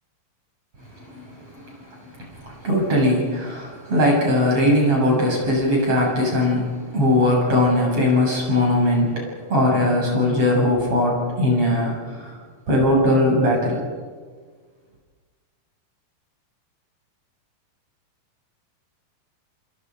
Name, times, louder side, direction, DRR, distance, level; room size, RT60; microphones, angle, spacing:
voice 1, 1.5-1.8 2.2-12.4 12.7-13.8, left 1 dB, 40° right, -2 dB, 8.2 m, -20 dB
29.0 x 27.5 x 5.2 m, 1.5 s
omnidirectional pair, 4.1 m